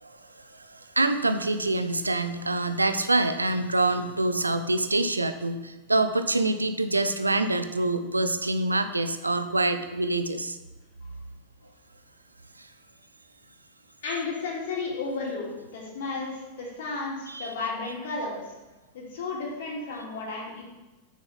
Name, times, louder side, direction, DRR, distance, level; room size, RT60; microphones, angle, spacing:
voice 1, 0.0-10.6 12.6-12.7 17.3-17.5, right 2 dB, 80° right, 10 dB, 0.6 m, -26 dB
voice 2, 14.0-18.5 18.9-20.6, left 3 dB, 60° left, -3 dB, 2.7 m, -33 dB
7.0 x 6.4 x 5.7 m, 1.1 s
figure-of-eight pair, 90°, 0 cm